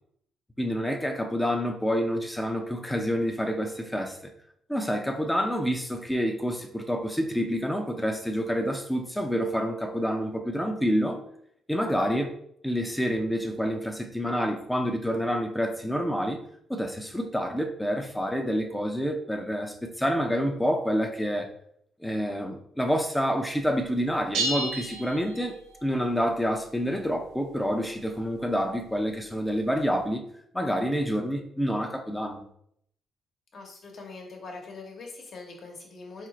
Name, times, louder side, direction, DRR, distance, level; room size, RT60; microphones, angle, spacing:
voice 1, 0.6-4.2 4.7-11.2 11.7-12.3 12.6-16.4 16.7-21.5 22.0-25.6 25.8-30.2 30.5-32.4, equal, 5° left, 5 dB, 0.6 m, -28 dB
sound 1, 24.3-25.9, right 2 dB, 85° right, 0.6 m, -31 dB
voice 2, 33.5-36.3, left 3 dB, 55° left, 1 dB, 1.1 m, -43 dB
4.4 x 2.0 x 3.8 m, 0.69 s
cardioid pair, 90°, 0 cm